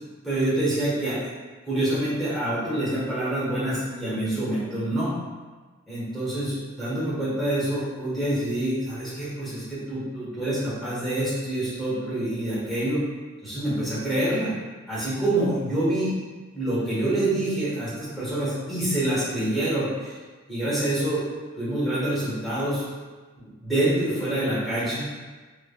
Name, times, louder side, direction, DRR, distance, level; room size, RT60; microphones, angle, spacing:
voice 1, 0.2-1.2 1.6-5.1 5.9-13.0 13.4-14.5 14.9-16.1 16.5-20.2 20.5-21.2 21.6-22.9 23.4-25.1, right 1 dB, ahead, -11 dB, 0.9 m, -26 dB
3.2 x 2.1 x 2.2 m, 1.4 s
head